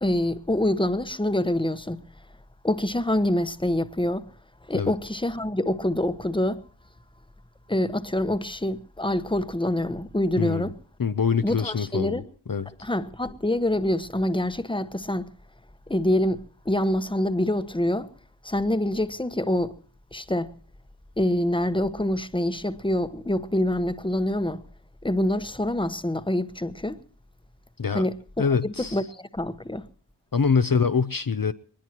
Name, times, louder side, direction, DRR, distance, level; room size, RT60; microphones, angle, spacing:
voice 1, 0.0-2.0 2.6-4.3 4.7-6.6 7.7-10.7 11.4-12.3 12.8-15.3 15.9-18.1 18.4-19.8 20.1-20.5 21.2-24.6 25.0-27.0 27.9-29.9, left 1 dB, 10° left, 1.2 m, -26 dB
voice 2, 10.4-10.7 11.0-12.2 12.5-12.7 27.8-28.1 28.4-29.0 30.3-31.5, left 5 dB, 50° left, 0.8 m, -24 dB
23.0 x 20.5 x 3.0 m
wide cardioid pair, 50°, 43 cm